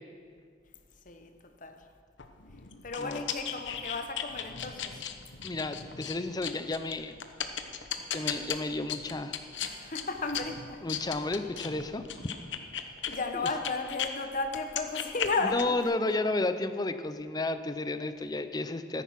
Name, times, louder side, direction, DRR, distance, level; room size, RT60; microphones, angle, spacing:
voice 1, 1.0-1.9 2.8-5.1 9.6-10.9 13.0-15.7, left 3 dB, 45° left, 1.0 m, -34 dB
sound 1, 2.2-14.1 14.5-15.8, left 8 dB, 80° left, 0.9 m, -37 dB
voice 2, 5.4-7.1 8.1-9.4 10.8-12.0 13.3-13.5 15.5-19.0, left 2 dB, 20° left, 0.5 m, -32 dB
13.5 x 10.0 x 5.9 m
head